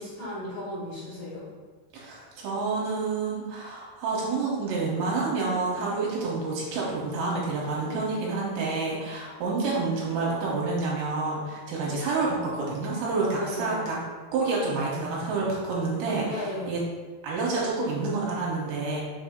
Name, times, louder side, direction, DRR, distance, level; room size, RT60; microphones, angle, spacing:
voice 1, 0.0-1.4 7.9-8.5 13.4-13.8 16.3-16.7, left 1 dB, 65° left, -12 dB, 1.6 m, -35 dB
voice 2, 1.9-14.0 14.3-16.8 17.2-19.0, right 3 dB, 75° right, -5 dB, 2.9 m, -28 dB
6.9 x 2.7 x 5.1 m, 1.4 s
omnidirectional pair, 5.5 m